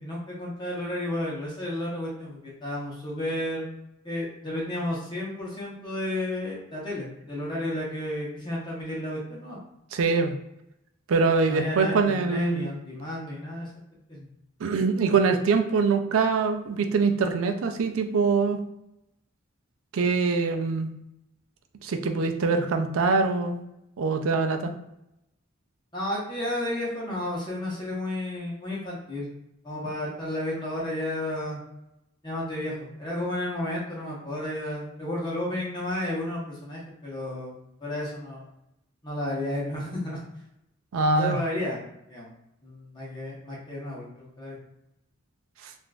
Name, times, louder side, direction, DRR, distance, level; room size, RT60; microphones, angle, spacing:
voice 1, 0.0-3.7 4.0-9.6 11.5-13.7 14.1-14.3 25.9-29.3 29.6-31.6 32.2-38.5 39.0-40.2 41.1-41.8 42.1-42.3 42.6-44.6, left 1 dB, 20° left, -5 dB, 0.8 m, -32 dB
voice 2, 9.9-10.4 11.1-12.7 14.6-18.6 19.9-20.9 21.8-23.6 24.0-24.7 40.9-41.4, right 4 dB, 85° right, 6 dB, 0.4 m, -24 dB
3.6 x 2.5 x 2.3 m, 0.85 s
head